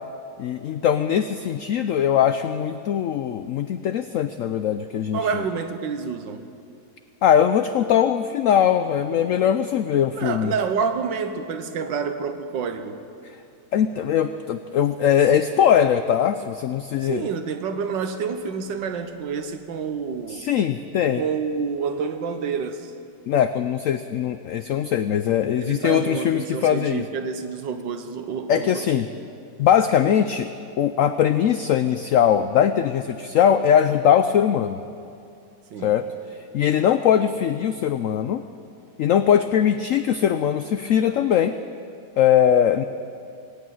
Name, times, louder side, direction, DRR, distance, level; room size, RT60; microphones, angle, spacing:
voice 1, 0.4-5.2 7.2-10.5 13.2-13.3 13.7-17.2 20.3-21.2 23.3-27.0 28.5-29.1 29.6-30.5 30.8-34.8 35.8-36.0 36.5-38.4 39.0-41.6 42.2-42.8, left 9 dB, 85° left, 10 dB, 0.7 m, -21 dB
voice 2, 5.1-6.4 10.1-13.0 17.0-20.4 21.2-22.9 25.6-29.0 35.7-35.9, right 6 dB, 85° right, 8 dB, 1.7 m, -28 dB
18.0 x 8.7 x 9.2 m, 2.5 s
omnidirectional pair, 1.9 m